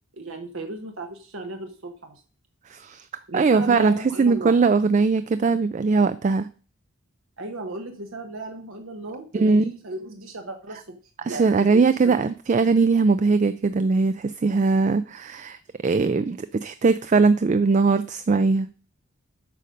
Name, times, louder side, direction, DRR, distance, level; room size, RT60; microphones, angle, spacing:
voice 1, 0.1-2.2 3.3-4.6 7.4-11.0 11.3-12.2, right 2 dB, 70° right, 4 dB, 1.1 m, -35 dB
voice 2, 2.7-3.1 3.3-6.5 9.3-9.7 11.2-18.7, right 4 dB, 35° right, 13 dB, 0.3 m, -20 dB
8.4 x 5.2 x 6.4 m, 0.39 s
head